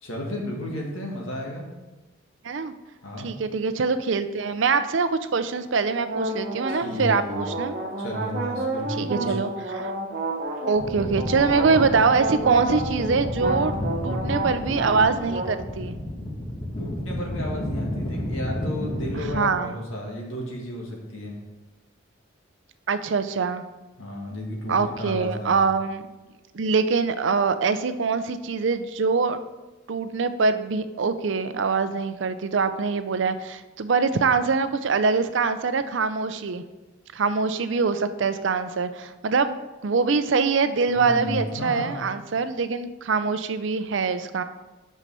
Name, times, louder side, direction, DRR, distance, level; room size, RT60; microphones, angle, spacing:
voice 1, 0.0-1.7 3.0-3.3 6.7-7.5 8.0-9.4 16.8-21.4 24.0-25.6 40.9-42.0, left 1 dB, 85° left, -1 dB, 1.8 m, -33 dB
voice 2, 3.2-7.7 9.0-9.9 10.7-13.7 14.0-15.9 19.2-19.8 22.9-23.6 24.7-26.0 26.5-29.4 29.9-36.6 37.1-39.5 39.8-44.4, right 4 dB, 65° right, 11 dB, 0.5 m, -24 dB
sound 1, 6.0-15.6, right 2 dB, 45° right, 1.2 m, -30 dB
sound 2, 10.7-19.4, left 1 dB, 25° left, 1.2 m, -31 dB
6.0 x 5.6 x 5.4 m, 1.1 s
head